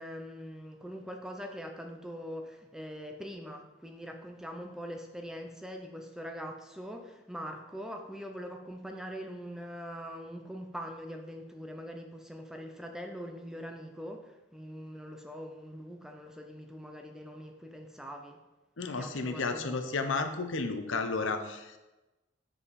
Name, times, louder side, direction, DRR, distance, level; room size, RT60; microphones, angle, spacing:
voice 1, 0.0-18.4 18.9-19.9, equal, 5° right, 3 dB, 0.4 m, -43 dB
voice 2, 18.8-21.8, left 4 dB, 70° left, 7 dB, 0.7 m, -32 dB
7.2 x 5.5 x 4.2 m, 1.1 s
head